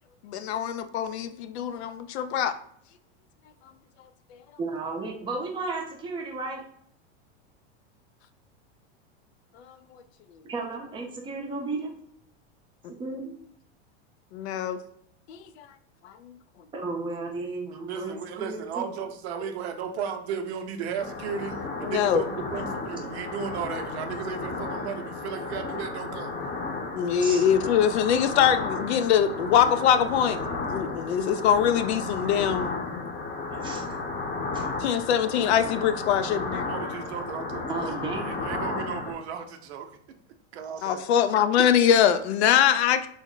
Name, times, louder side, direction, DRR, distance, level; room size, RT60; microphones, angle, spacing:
voice 1, 0.2-2.6 9.7-9.8 14.3-14.8 15.3-15.7 16.0-16.1 21.8-22.2 26.9-30.4 30.7-32.8 34.8-36.7 40.8-43.1, left 9 dB, 85° left, 11 dB, 0.5 m, -23 dB
voice 2, 4.6-6.6 10.5-11.9 13.0-13.3 16.7-18.9 27.2-27.4 33.5-33.9 34.5-34.7 37.7-38.8, right 3 dB, 15° right, 1 dB, 0.5 m, -34 dB
voice 3, 17.7-26.3 27.1-27.2 36.7-39.9 40.5-41.1, right 7 dB, 85° right, 7 dB, 0.6 m, -35 dB
sound 1, 21.0-39.1, left 3 dB, 25° left, 0.7 m, -33 dB
3.5 x 2.0 x 3.7 m, 0.67 s
supercardioid pair, 135°, 32 cm